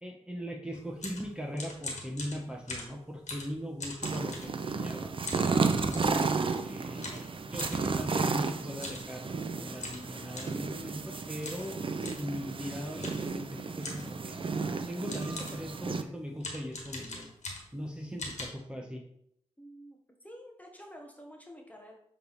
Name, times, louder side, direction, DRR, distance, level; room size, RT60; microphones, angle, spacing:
voice 1, 0.0-5.1 5.5-6.3 6.6-11.8 12.2-14.4 14.9-17.3 17.7-19.0, equal, 10° right, 1 dB, 1.2 m, -40 dB
sound 1, 0.7-4.9 5.3-6.2 7.0-7.8 8.7-9.1 9.4-9.5 9.8-10.6 11.4-11.7 12.0-12.3 13.0-13.3 13.8-14.2 14.7-14.8 15.1-15.7 16.4-17.8 18.2-18.4, left 2 dB, 80° left, 1.6 m, -41 dB
sound 2, 4.0-16.0, right 4 dB, 50° right, 0.6 m, -33 dB
voice 2, 19.6-21.9, equal, 15° left, 1 dB, 1.2 m, -49 dB
7.9 x 3.4 x 4.2 m, 0.72 s
cardioid pair, 60°, 12 cm